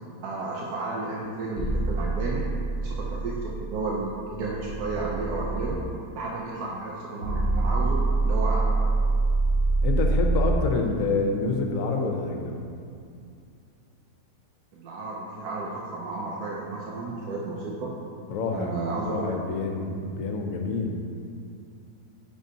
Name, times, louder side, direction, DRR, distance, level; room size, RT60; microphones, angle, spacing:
voice 1, 0.2-2.4 2.8-5.8 6.1-8.7 14.7-17.9 18.5-19.3, right 3 dB, 80° right, -4 dB, 1.2 m, -32 dB
sound 1, 1.6-5.7 7.2-10.5, right 3 dB, 60° right, 1.6 m, -25 dB
voice 2, 9.8-12.6 18.3-21.0, left 3 dB, 65° left, 3 dB, 1.0 m, -27 dB
9.0 x 4.5 x 2.8 m, 2.4 s
omnidirectional pair, 1.7 m